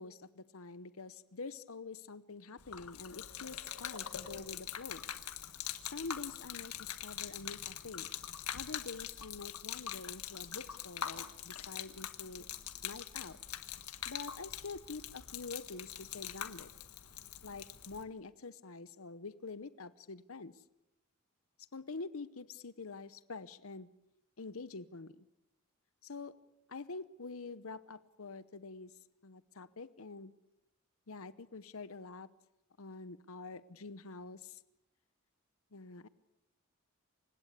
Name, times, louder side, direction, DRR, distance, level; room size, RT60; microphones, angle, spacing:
voice 1, 0.0-5.1 5.8-8.1 8.5-12.5 12.8-13.4 14.1-16.7 17.4-20.6 21.7-23.9 24.4-25.3 26.0-26.4 26.7-30.3 31.1-32.3 32.8-34.6 35.7-36.1, left 3 dB, 70° left, 15 dB, 0.9 m, -46 dB
Gurgling / Liquid, 2.6-18.0, left 10 dB, 90° left, 1.6 m, -43 dB
28.5 x 17.0 x 8.2 m, 0.86 s
head